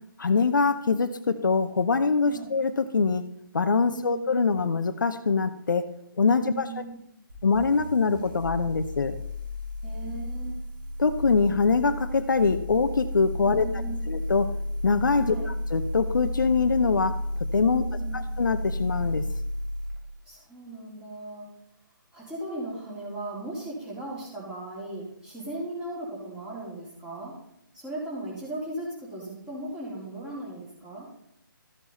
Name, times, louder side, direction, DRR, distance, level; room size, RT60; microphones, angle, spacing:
voice 1, 0.2-3.2 3.5-5.9 6.2-6.7 7.4-9.2 11.0-13.7 14.1-14.5 14.8-17.2 17.5-17.8 18.1-19.3, left 4 dB, 65° left, 9 dB, 0.8 m, -24 dB
voice 2, 3.9-4.2 6.4-7.0 9.8-10.6 13.4-14.1 15.2-15.5 17.7-18.2 20.2-21.4 22.1-27.3 27.7-31.1, right 1 dB, 5° right, -6 dB, 3.4 m, -37 dB
sound 1, 7.3-20.0, left 1 dB, 70° right, 4.5 m, -32 dB
13.5 x 7.1 x 4.1 m, 0.78 s
figure-of-eight pair, 150°, 11 cm